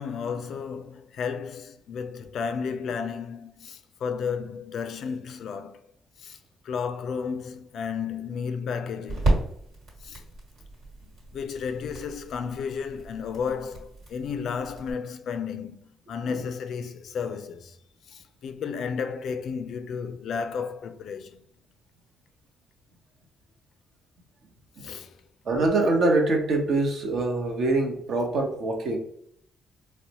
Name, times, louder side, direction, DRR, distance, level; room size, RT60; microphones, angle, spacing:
voice 1, 0.0-5.8 6.2-6.4 6.6-9.4 10.0-10.2 11.3-17.8 18.1-21.4 24.8-25.1, left 6 dB, 70° left, 0.3 m, -33 dB
sound 1, 7.0-14.9, right 2 dB, 75° right, 1.5 m, -33 dB
voice 2, 25.5-29.0, right 2 dB, 60° right, 0.8 m, -24 dB
4.0 x 2.1 x 2.8 m
cardioid pair, 90°, 0 cm